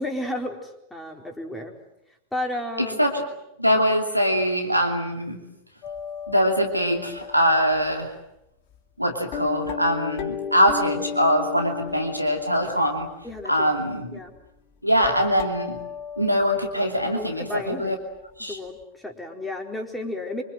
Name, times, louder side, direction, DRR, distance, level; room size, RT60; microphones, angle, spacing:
voice 1, 0.0-1.7 2.3-3.0 13.2-13.7 14.1-14.3 17.0-17.9 18.4-20.4, left 1 dB, 5° left, 2 dB, 4.3 m, -32 dB
voice 2, 2.8-3.2 3.6-5.4 6.3-8.1 9.0-13.1 13.4-14.2 14.8-15.8 16.2-18.0 18.4-18.6, equal, 90° right, 3 dB, 2.7 m, -23 dB
sound 1, 5.8-7.9 8.8-8.9 9.3-13.6 14.3-14.5 14.9-17.9 18.1-18.2 18.8-18.9, left 7 dB, 40° left, 2.4 m, -35 dB
25.5 x 25.5 x 7.7 m, 0.84 s
figure-of-eight pair, 90°, 0 cm